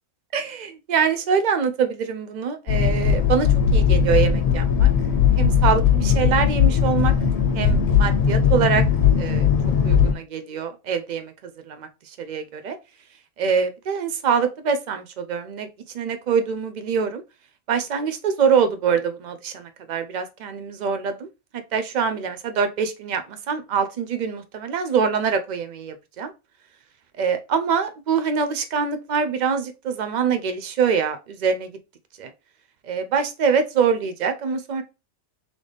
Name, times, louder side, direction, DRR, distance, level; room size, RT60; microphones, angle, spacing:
voice 1, 0.3-4.9 5.4-7.1 7.5-8.8 9.2-9.5 9.8-11.3 11.7-11.9 12.2-12.8 13.4-15.7 15.9-17.2 17.7-21.3 21.7-26.3 27.2-31.7 32.2-32.3 32.8-34.8, right 6 dB, 80° right, 0.4 m, -24 dB
sound 1, 2.7-10.1, left 7 dB, 90° left, 0.3 m, -18 dB
3.4 x 3.2 x 3.9 m
omnidirectional pair, 1.4 m